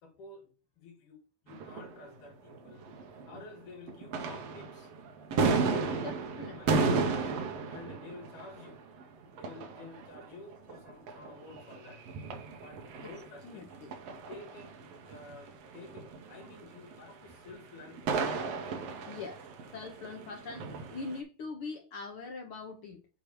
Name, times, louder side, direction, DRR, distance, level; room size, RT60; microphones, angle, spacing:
voice 1, 0.0-2.9 3.3-4.9 5.6-7.3 7.7-8.8 9.3-12.0 12.6-13.7 14.3-14.8 15.1-18.2, left 3 dB, 80° left, 3.5 m, -50 dB
sound 1, 1.5-3.6 3.9-21.2, right 4 dB, 65° right, 1.9 m, -35 dB
voice 2, 5.9-6.8 13.0-13.1 13.4-13.9 18.6-19.4 19.7-23.1, left 4 dB, 60° left, 1.5 m, -43 dB
8.6 x 3.1 x 6.1 m
omnidirectional pair, 3.6 m